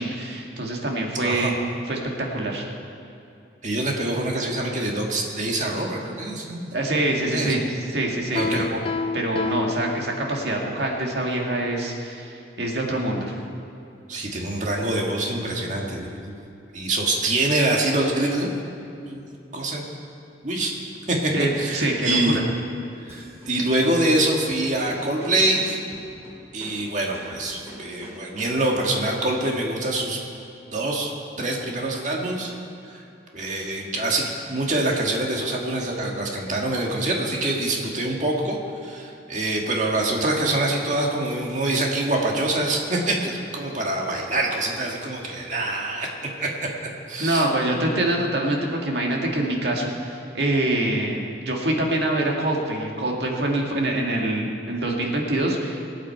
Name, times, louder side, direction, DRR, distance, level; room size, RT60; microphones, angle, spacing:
voice 1, 0.0-1.5 1.9-2.6 6.7-7.6 7.9-8.8 9.1-13.3 21.3-22.2 47.2-55.8, right 1 dB, 65° right, 0 dB, 1.9 m, -25 dB
voice 2, 3.6-6.7 7.3-7.6 8.3-8.6 14.1-16.3 16.7-18.5 19.0-19.2 19.5-19.8 20.4-20.7 21.1-22.4 23.0-25.8 26.5-30.2 30.7-31.1 31.4-32.5 32.9-33.0 33.3-38.6 38.8-46.1 46.4-46.5 47.1-47.5, right 2 dB, 40° right, -1 dB, 1.8 m, -25 dB
Piano, 8.3-10.6, left 4 dB, 30° left, 0.3 m, -29 dB
sound 1, 23.1-28.9, equal, 15° right, 2.6 m, -44 dB
23.0 x 8.9 x 4.6 m, 2.7 s
head